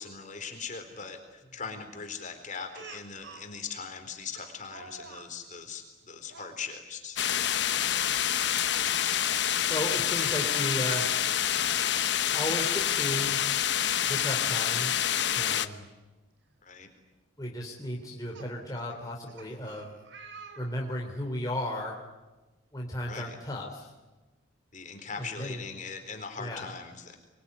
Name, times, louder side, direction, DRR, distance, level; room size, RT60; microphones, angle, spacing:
voice 1, 0.0-7.2 16.6-16.9 23.1-23.4 24.7-27.2, left 5 dB, 40° left, 5 dB, 4.2 m, -40 dB
Speech, 2.7-3.5 4.3-5.3 6.2-6.6 7.8-8.1 8.5-8.6 10.3-10.4 11.2-12.0 13.4-13.5 13.8-13.9 15.8-15.9 16.5-16.7 17.8-21.2, right 3 dB, 60° right, 3.3 m, -49 dB
sound 1, 7.2-15.7, left 10 dB, 60° left, 1.0 m, -27 dB
voice 2, 9.7-11.1 12.3-13.4 14.0-15.9 17.4-20.0 20.6-22.0 22.7-23.9 25.2-25.6 26.4-26.7, left 1 dB, 20° left, -1 dB, 3.4 m, -35 dB
26.0 x 22.5 x 9.9 m, 1.1 s
head